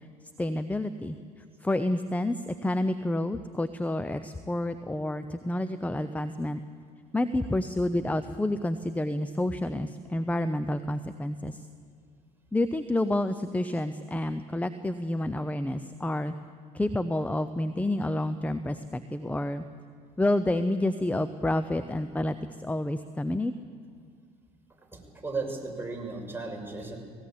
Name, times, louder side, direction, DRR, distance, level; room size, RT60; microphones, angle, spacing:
voice 1, 0.4-1.2 1.6-6.6 7.1-11.6 12.5-16.3 16.7-19.6 20.2-23.5, left 1 dB, 5° left, 11 dB, 0.8 m, -29 dB
voice 2, 24.8-27.0, right 3 dB, 10° right, 0 dB, 5.8 m, -35 dB
18.5 x 18.0 x 8.7 m, 2.1 s
hypercardioid pair, 65°, 20 cm